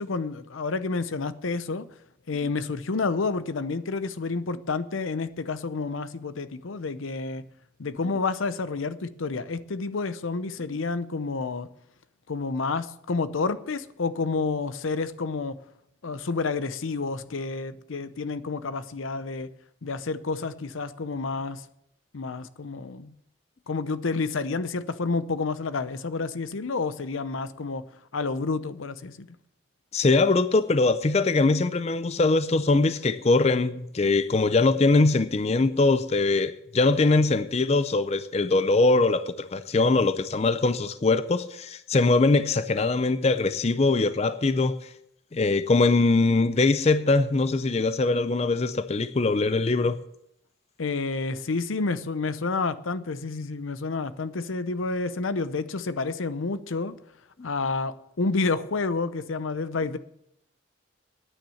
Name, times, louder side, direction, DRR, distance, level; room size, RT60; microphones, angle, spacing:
voice 1, 0.0-1.9 2.3-7.4 7.8-11.7 12.3-15.6 16.0-19.5 19.8-21.6 22.1-23.1 23.7-27.8 28.1-29.3 50.8-57.0 57.4-60.0, left 4 dB, 90° left, 0.7 m, -29 dB
voice 2, 29.9-44.9 45.3-50.0, left 3 dB, 30° left, 0.4 m, -22 dB
10.0 x 9.1 x 7.0 m
head